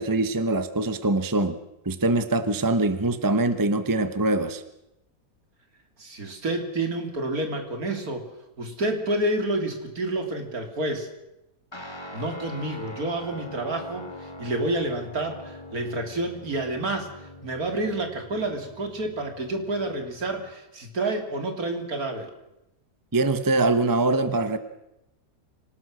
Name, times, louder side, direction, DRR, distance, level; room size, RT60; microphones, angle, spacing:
voice 1, 0.0-1.6 1.8-4.6 23.1-24.6, right 2 dB, 15° right, 11 dB, 0.9 m, -23 dB
voice 2, 6.0-8.3 8.6-11.1 12.1-17.1 17.4-22.3, right 2 dB, 55° right, 5 dB, 3.4 m, -29 dB
Guitar, 11.7-20.5, left 2 dB, 15° left, 2.2 m, -43 dB
26.0 x 19.0 x 6.3 m, 0.89 s
omnidirectional pair, 1.8 m